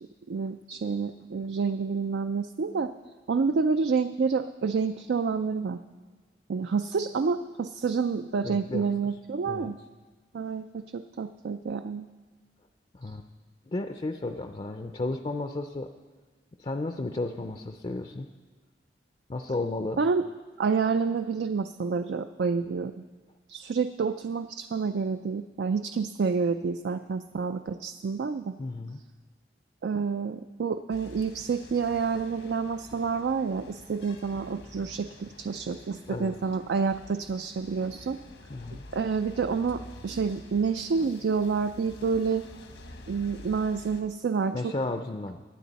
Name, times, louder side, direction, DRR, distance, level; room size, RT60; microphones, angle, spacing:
voice 1, 0.3-2.9 3.3-5.8 6.5-9.8 10.3-12.1 20.0-20.3 20.6-23.0 23.5-28.5 29.8-38.2 38.9-42.4 43.1-44.7, right 5 dB, 75° right, 10 dB, 0.4 m, -28 dB
voice 2, 8.4-8.9 9.5-9.7 12.9-13.3 13.6-15.9 16.6-18.3 19.3-20.0 28.6-29.0 36.1-36.4 38.5-38.8 44.5-45.4, left 2 dB, 30° left, 6 dB, 0.4 m, -33 dB
sound 1, 30.9-44.0, left 1 dB, 80° left, 1.2 m, -48 dB
21.0 x 9.3 x 4.1 m, 1.4 s
head